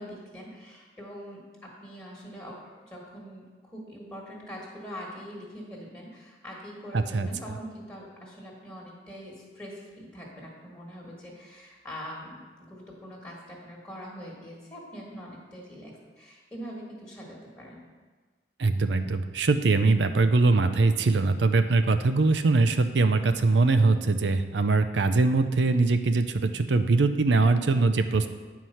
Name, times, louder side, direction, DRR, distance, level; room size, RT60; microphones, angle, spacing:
voice 1, 0.0-17.9, equal, 15° left, -3 dB, 1.5 m, -43 dB
voice 2, 6.9-7.3 18.6-28.3, right 3 dB, 75° right, 9 dB, 0.5 m, -22 dB
9.1 x 4.7 x 5.6 m, 1.4 s
head